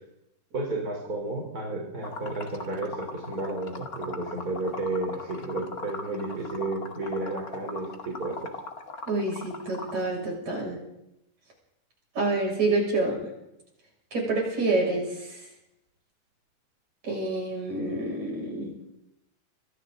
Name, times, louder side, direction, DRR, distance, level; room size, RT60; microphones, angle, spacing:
voice 1, 0.5-8.6, right 2 dB, 20° right, 0 dB, 4.1 m, -32 dB
Liquid, 2.0-10.0, left 3 dB, 40° left, 1.2 m, -39 dB
voice 2, 9.1-10.8 12.1-13.2 14.1-15.4 17.0-18.7, right 2 dB, 40° right, -1 dB, 8.1 m, -27 dB
26.5 x 25.5 x 4.0 m, 0.83 s
omnidirectional pair, 5.0 m